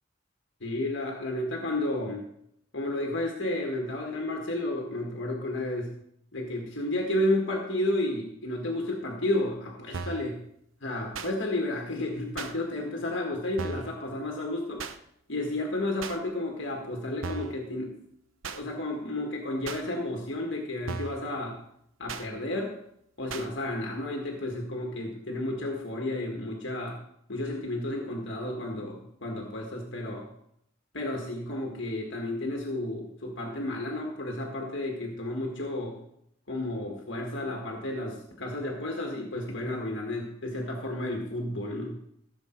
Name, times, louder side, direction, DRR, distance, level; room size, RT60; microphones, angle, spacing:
voice 1, 0.6-2.3 2.7-5.9 6.3-10.4 10.8-14.9 15.3-18.0 18.5-21.6 22.0-22.8 23.2-27.0 27.3-30.3 30.9-36.0 36.5-42.0, left 1 dB, 65° left, 0 dB, 1.8 m, -32 dB
sound 1, 9.9-10.3 11.1-11.3 12.4-12.5 13.6-13.9 14.8-15.0 16.0-16.2 17.2-17.6 18.4-18.6 19.7-19.8 20.9-21.2 22.1-22.3 23.3-23.5, right 4 dB, 80° right, 0.9 m, -36 dB
15.0 x 7.5 x 4.5 m, 0.74 s
head